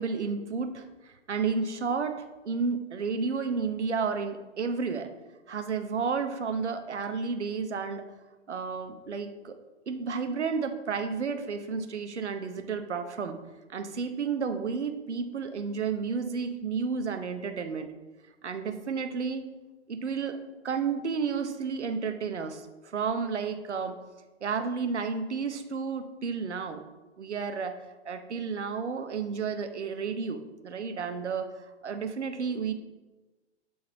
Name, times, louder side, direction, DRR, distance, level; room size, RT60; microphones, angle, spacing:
voice 1, 0.0-5.1 5.5-8.1 8.5-9.5 9.9-13.4 13.7-17.9 18.4-19.5 19.9-24.0 24.4-26.8 27.2-27.8 28.0-31.5 31.8-32.7, right 5 dB, 80° right, 7 dB, 0.8 m, -32 dB
7.8 x 3.9 x 3.9 m, 1.2 s
figure-of-eight pair, 110°, 34 cm